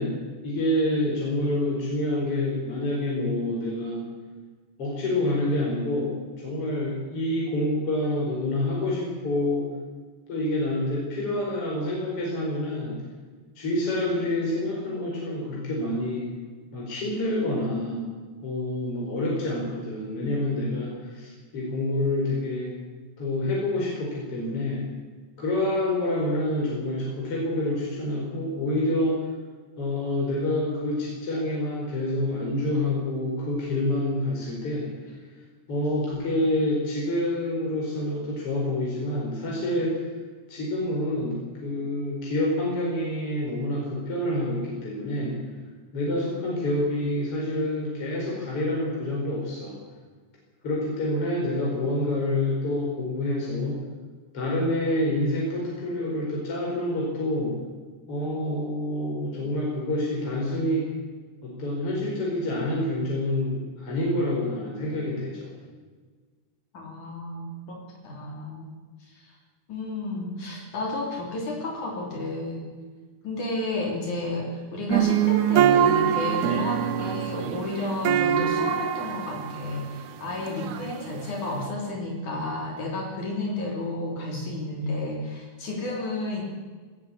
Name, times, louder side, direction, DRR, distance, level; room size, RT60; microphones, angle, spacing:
voice 1, 0.0-4.0 4.8-9.7 10.3-12.9 13.6-16.3 16.7-18.1 18.4-22.8 23.2-24.8 25.4-29.2 29.8-35.1 35.7-40.1 40.5-45.3 45.9-49.8 50.6-53.8 54.3-57.6 58.1-60.9 61.4-65.5, left 1 dB, 40° left, -3 dB, 5.9 m, -27 dB
voice 2, 66.7-68.7 69.1-69.4 69.7-72.7 73.2-86.4, left 2 dB, 65° left, -1 dB, 4.8 m, -32 dB
sound 1, 74.9-81.6, right 9 dB, 70° right, 2.6 m, -24 dB
19.0 x 18.0 x 8.6 m, 1.5 s
omnidirectional pair, 3.8 m